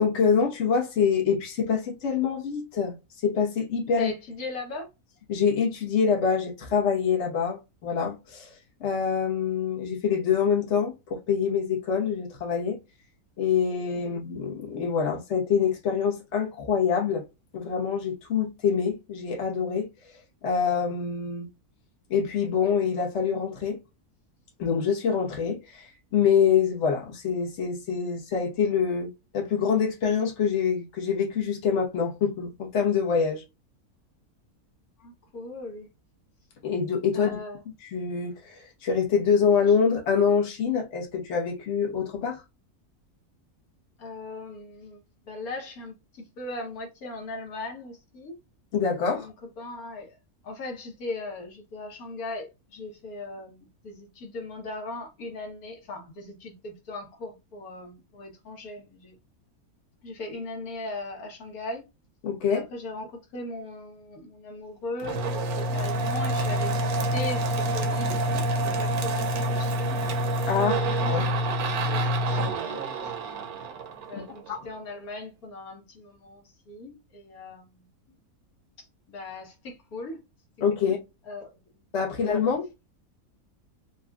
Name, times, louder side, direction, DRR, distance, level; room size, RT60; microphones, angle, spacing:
voice 1, 0.0-4.1 5.3-12.8 13.4-17.2 17.5-19.9 20.4-21.5 22.1-23.8 24.6-33.4 36.6-37.4 37.8-42.4 48.7-49.3 62.2-62.6 70.5-71.2 74.1-74.2 74.5-74.6 80.6-81.0 81.9-82.7, left 6 dB, 50° left, 1.3 m, -25 dB
voice 2, 4.0-4.9 35.0-35.9 37.1-37.6 44.0-45.0 45.2-48.3 49.1-50.2 50.4-59.1 60.0-61.8 62.5-68.1 68.5-70.0 70.8-71.3 71.6-73.1 74.1-77.9 78.8-80.2 80.8-81.0 81.3-81.6 82.1-82.4, left 2 dB, 75° left, 1.5 m, -39 dB
sound 1, 65.0-74.6, right 1 dB, 80° right, 1.2 m, -27 dB
4.9 x 2.3 x 2.2 m
omnidirectional pair, 1.6 m